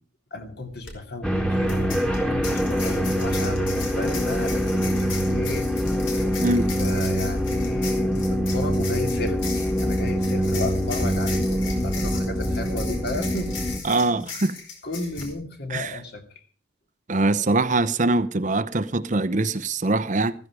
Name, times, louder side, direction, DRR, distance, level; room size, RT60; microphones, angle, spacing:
voice 1, 0.3-5.7 6.2-9.4 9.8-13.6 14.1-14.3 14.8-16.2, left 1 dB, 55° left, 2.6 m, -34 dB
sound 1, 0.7-0.9 1.7-15.3, left 5 dB, 80° left, 4.7 m, -38 dB
sound 2, 1.2-13.8, equal, 5° left, 1.7 m, -24 dB
voice 2, 13.8-14.6 15.7-16.0 17.1-20.3, right 2 dB, 40° right, 0.8 m, -23 dB
15.0 x 14.5 x 4.9 m
head